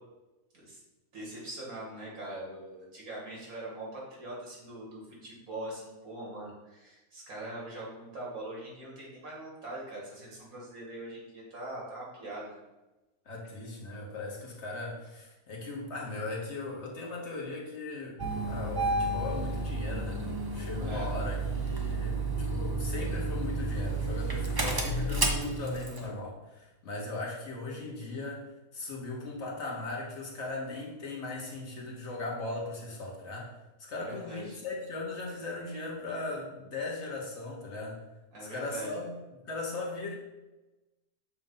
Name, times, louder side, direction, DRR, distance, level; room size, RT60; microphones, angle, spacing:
voice 1, 1.1-12.5 20.8-21.1 33.9-34.6 38.3-38.9, right 1 dB, 85° right, -4 dB, 2.6 m, -42 dB
voice 2, 13.2-18.2 18.4-28.4 28.7-33.5 33.9-38.0 38.4-40.1, left 2 dB, 55° left, -2 dB, 1.4 m, -38 dB
Engine starting, 18.2-26.1, right 2 dB, 30° right, 0.4 m, -31 dB
6.8 x 2.6 x 5.5 m, 1.1 s
omnidirectional pair, 1.5 m